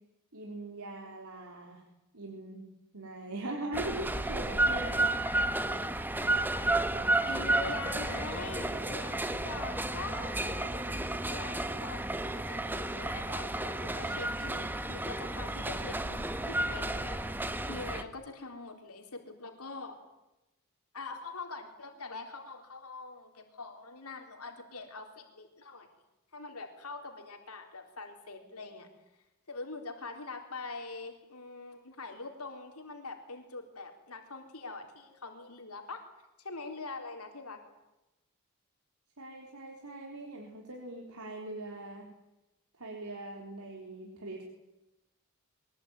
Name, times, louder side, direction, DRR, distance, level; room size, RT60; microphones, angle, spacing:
voice 1, 0.3-1.8 2.1-2.7 2.9-5.1 39.2-42.1 42.8-44.4, right 1 dB, 75° right, 1 dB, 3.9 m, -41 dB
sound 1, 3.7-18.0, right 2 dB, 10° right, 1.2 m, -32 dB
voice 2, 7.2-12.0 12.5-20.0 20.9-25.9 26.3-28.9 29.5-36.0 36.4-37.6, left 3 dB, 75° left, 4 dB, 3.9 m, -43 dB
23.5 x 20.5 x 9.5 m, 0.96 s
head